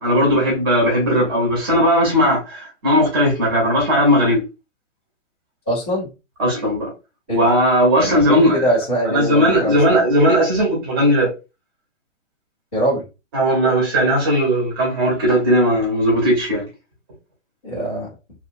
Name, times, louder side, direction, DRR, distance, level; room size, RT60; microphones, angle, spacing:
voice 1, 0.0-4.4 6.4-6.9 7.3-8.6 9.1-11.3 13.3-16.6, equal, 20° right, 0.8 m, -17 dB
voice 2, 5.7-6.1 7.3-7.5 8.0-10.0 12.7-13.0 17.6-18.1, equal, 10° left, 0.5 m, -22 dB
2.6 x 2.3 x 2.5 m
hypercardioid pair, 165°, 39 cm